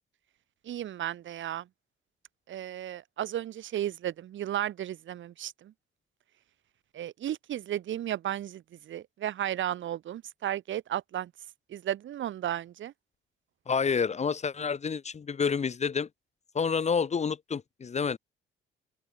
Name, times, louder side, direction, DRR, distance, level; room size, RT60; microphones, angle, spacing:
voice 1, 0.6-1.7 2.5-5.7 6.9-11.3 11.7-12.9, right 11 dB, 75° right, 5.6 m, -34 dB
voice 2, 13.7-16.1 16.5-18.2, left 6 dB, 35° left, 0.9 m, -29 dB
open air
cardioid pair, 90°, 20 cm